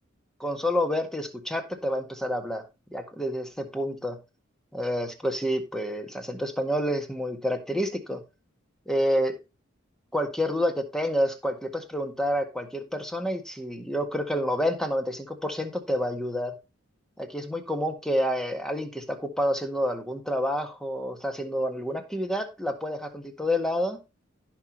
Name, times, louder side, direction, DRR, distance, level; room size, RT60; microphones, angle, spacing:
voice 1, 0.4-2.6 2.9-4.2 4.7-8.2 8.9-9.4 10.1-16.5 17.2-24.0, equal, 5° left, 6 dB, 1.7 m, -28 dB
16.5 x 5.9 x 3.0 m, 0.27 s
head